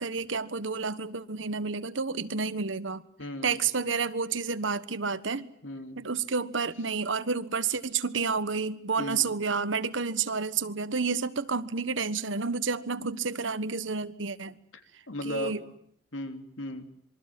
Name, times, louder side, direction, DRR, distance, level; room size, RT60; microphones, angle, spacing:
voice 1, 0.0-3.0 3.4-5.5 6.0-14.6 15.2-15.6, right 5 dB, 80° right, 1.4 m, -30 dB
voice 2, 3.2-3.6 5.6-6.0 9.0-9.3 15.1-15.5 16.1-16.9, left 1 dB, 85° left, 3.2 m, -36 dB
27.0 x 23.5 x 7.7 m
head